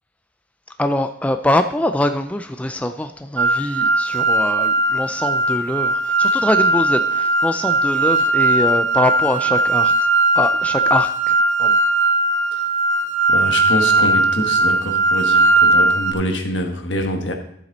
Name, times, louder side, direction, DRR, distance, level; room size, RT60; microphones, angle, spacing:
voice 1, 0.8-9.9 10.4-11.3 11.6-11.8, left 1 dB, 5° left, 7 dB, 0.4 m, -23 dB
sound 1, 3.4-16.1, right 2 dB, 75° right, 0.9 m, -18 dB
voice 2, 13.3-17.3, equal, 75° left, 4 dB, 1.5 m, -25 dB
12.5 x 7.3 x 4.0 m, 0.73 s
head